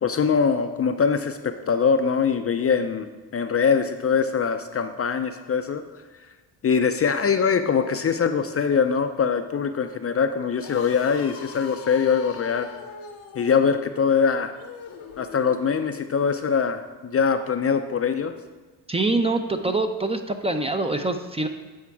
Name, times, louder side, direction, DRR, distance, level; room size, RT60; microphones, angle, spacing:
voice 1, 0.0-5.8 6.6-12.7 13.4-14.5 15.2-18.3, left 6 dB, 35° left, 8 dB, 0.5 m, -23 dB
sound 1, 10.4-16.1, left 6 dB, 85° left, 1.1 m, -42 dB
voice 2, 18.9-21.5, right 2 dB, 15° right, 6 dB, 0.5 m, -24 dB
8.5 x 4.6 x 4.6 m, 1.3 s
cardioid pair, 80°, 41 cm